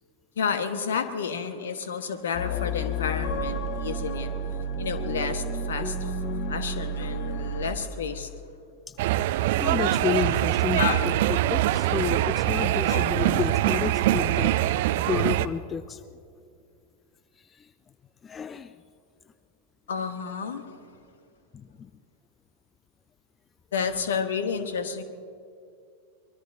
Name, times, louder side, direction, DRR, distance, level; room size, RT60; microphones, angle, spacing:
voice 1, 0.4-4.3 4.8-6.2 6.5-8.3 10.8-11.1 12.5-13.1 19.9-20.7 23.7-25.0, left 6 dB, 65° left, 10 dB, 1.1 m, -30 dB
sound 1, 2.3-7.7, right 1 dB, 40° left, 1.3 m, -31 dB
sound 2, 9.0-15.5, right 13 dB, 50° right, 0.4 m, -23 dB
voice 2, 9.3-10.8 11.5-16.0 17.5-17.7 18.2-18.7 21.5-21.6, left 7 dB, 20° left, 15 dB, 0.4 m, -31 dB
24.0 x 21.5 x 2.6 m, 2.4 s
figure-of-eight pair, 90°, 0 cm